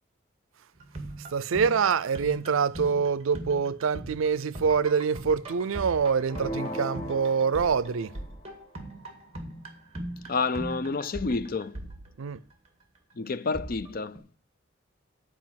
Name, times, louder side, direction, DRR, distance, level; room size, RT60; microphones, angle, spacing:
sound 1, 0.7-12.7 13.5-14.2, right 1 dB, 30° right, 1.9 m, -40 dB
voice 1, 1.3-8.2 12.2-12.4, right 6 dB, 85° right, 0.5 m, -25 dB
sound 2, 6.3-8.4, equal, 25° left, 1.3 m, -37 dB
voice 2, 10.3-11.8 13.2-14.2, left 4 dB, 45° left, 0.5 m, -29 dB
9.7 x 4.9 x 7.5 m
head